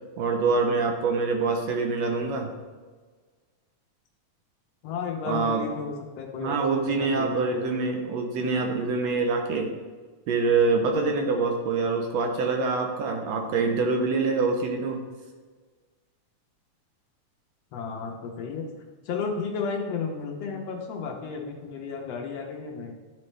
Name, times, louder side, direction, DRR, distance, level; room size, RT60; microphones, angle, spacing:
voice 1, 0.2-2.5 5.3-5.7 6.4-9.7 10.3-15.0, right 4 dB, 70° right, 3 dB, 1.7 m, -25 dB
voice 2, 4.8-6.6 6.9-7.7 17.7-18.6 19.1-22.9, left 5 dB, 70° left, 1 dB, 1.6 m, -33 dB
10.5 x 4.2 x 3.2 m, 1.4 s
omnidirectional pair, 3.4 m